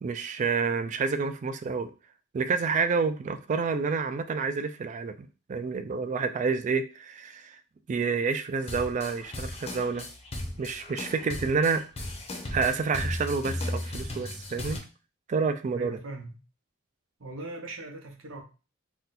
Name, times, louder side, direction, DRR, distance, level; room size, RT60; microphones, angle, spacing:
voice 1, 0.0-1.9 2.3-7.6 7.9-10.1 10.6-11.8 12.5-14.8 15.3-16.0, right 5 dB, 40° right, 0.3 m, -29 dB
sound 1, 8.6-14.8, left 1 dB, 30° left, 0.6 m, -36 dB
voice 2, 15.7-16.4 17.2-18.4, right 2 dB, 90° right, 0.8 m, -40 dB
2.7 x 2.2 x 4.0 m
head